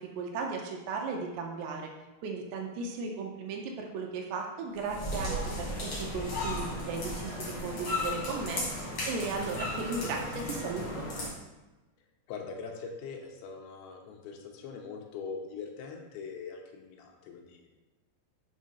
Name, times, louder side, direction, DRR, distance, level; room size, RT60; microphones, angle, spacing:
voice 1, 0.0-1.9 2.2-11.1, right 4 dB, 80° right, 1 dB, 2.8 m, -36 dB
sound 1, 4.8-11.3, left 1 dB, 60° left, 1.1 m, -35 dB
voice 2, 12.3-17.8, left 5 dB, 90° left, 2 dB, 3.0 m, -42 dB
7.7 x 3.1 x 5.5 m, 1.1 s
omnidirectional pair, 5.1 m